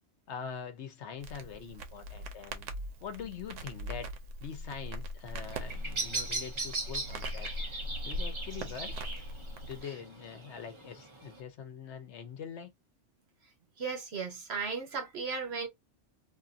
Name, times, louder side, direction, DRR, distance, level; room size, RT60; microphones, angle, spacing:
voice 1, 0.3-2.7 3.0-4.1 4.4-7.5 8.0-9.0 9.6-12.7, left 7 dB, 70° left, 1.0 m, -43 dB
Crackle, 1.2-9.8, equal, 90° right, 1.0 m, -40 dB
Bird vocalization bird call bird song, 5.4-11.4, right 2 dB, 35° right, 0.6 m, -39 dB
voice 2, 13.8-15.7, right 5 dB, 60° right, 1.2 m, -36 dB
2.6 x 2.5 x 2.5 m
omnidirectional pair, 1.2 m